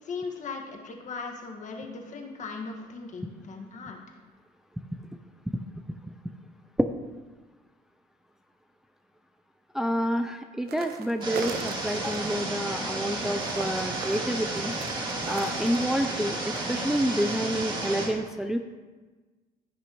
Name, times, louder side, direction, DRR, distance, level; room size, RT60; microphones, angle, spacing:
voice 1, 0.0-4.0, left 4 dB, 45° left, 2 dB, 1.6 m, -38 dB
voice 2, 9.7-14.7 15.3-18.6, equal, 5° right, 6 dB, 0.4 m, -28 dB
sound 1, 10.7-12.4 12.8-15.9, right 6 dB, 65° right, 1.0 m, -39 dB
sound 2, 11.2-18.1, right 2 dB, 25° right, 2.2 m, -32 dB
15.5 x 6.2 x 3.0 m, 1.3 s
cardioid pair, 110°, 17 cm